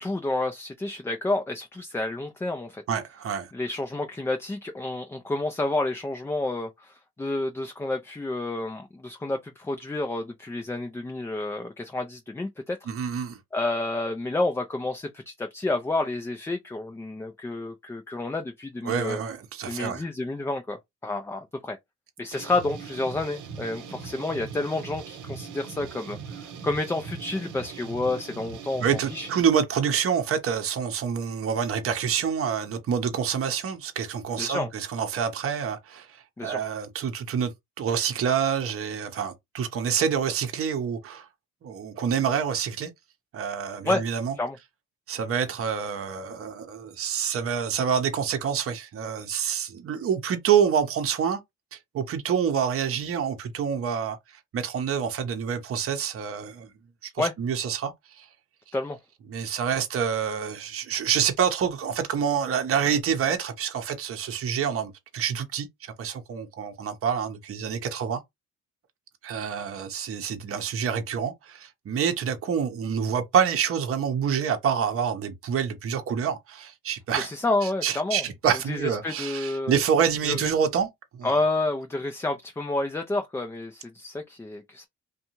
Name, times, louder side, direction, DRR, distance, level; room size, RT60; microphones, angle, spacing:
voice 1, 0.0-2.8 3.5-12.9 13.5-19.2 19.7-20.8 21.0-21.8 22.2-29.3 34.4-34.7 36.4-36.6 43.8-44.0 44.4-44.6 57.2-57.3 58.7-59.0 77.1-78.2 78.7-79.7 80.2-80.5 81.2-84.9, left 2 dB, 10° left, 0.3 m, -29 dB
voice 2, 2.9-3.5 12.9-13.4 18.8-20.0 28.8-36.2 36.4-37.5 37.8-41.3 41.6-42.9 43.3-44.3 45.1-51.4 51.7-54.2 54.5-56.7 57.0-58.3 59.3-68.2 69.2-77.3 77.6-80.9 81.2-81.3, right 7 dB, 50° right, 0.7 m, -27 dB
sound 1, 22.3-29.4, right 6 dB, 80° right, 0.7 m, -40 dB
2.6 x 2.3 x 2.9 m
cardioid pair, 90°, 30 cm